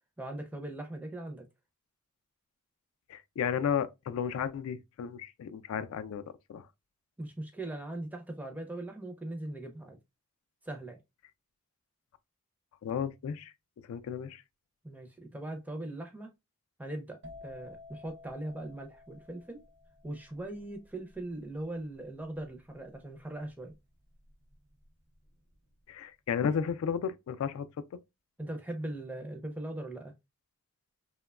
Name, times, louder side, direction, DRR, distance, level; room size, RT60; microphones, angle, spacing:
voice 1, 0.2-1.5 7.2-10.0 10.6-11.0 14.8-16.3 16.8-19.6 20.0-23.7 28.4-30.1, right 1 dB, 10° right, 0.4 m, -40 dB
voice 2, 3.1-6.2 6.5-6.7 12.8-13.5 13.9-14.4 25.9-27.7, left 7 dB, 80° left, 0.3 m, -33 dB
sound 1, 17.2-24.8 25.1-25.6, left 3 dB, 55° right, 0.6 m, -53 dB
2.9 x 2.1 x 2.2 m
head